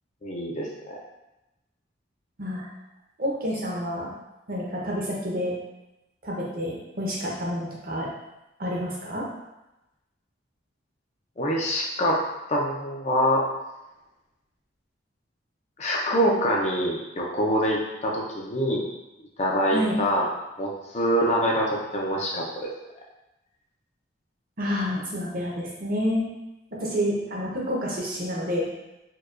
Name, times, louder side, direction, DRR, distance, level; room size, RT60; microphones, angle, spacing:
voice 1, 0.2-1.0 11.4-12.2 12.5-13.4 15.8-18.8 19.4-20.3 20.6-22.7, equal, 35° left, -2 dB, 0.5 m, -25 dB
voice 2, 3.2-4.1 4.5-5.5 6.2-8.1 8.6-9.3 19.7-19.9 24.6-26.3 26.8-28.7, equal, 50° right, -4 dB, 0.8 m, -28 dB
4.5 x 2.3 x 2.5 m, 0.96 s
head